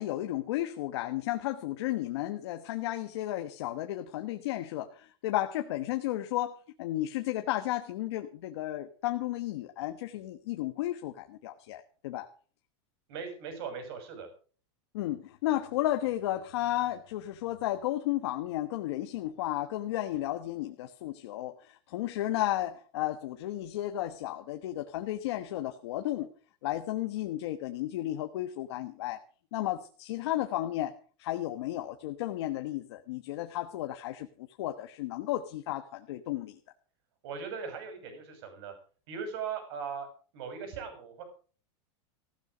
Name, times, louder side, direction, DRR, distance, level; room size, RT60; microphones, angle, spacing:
voice 1, 0.0-12.3 14.9-26.3 26.6-29.2 29.5-30.9 31.2-36.6, left 14 dB, 65° left, 7 dB, 1.2 m, -33 dB
voice 2, 13.1-14.3 37.2-38.7 39.1-40.1 40.3-41.2, right 6 dB, 55° right, 6 dB, 6.4 m, -39 dB
16.0 x 12.0 x 5.1 m, 0.41 s
supercardioid pair, 165°, 15 cm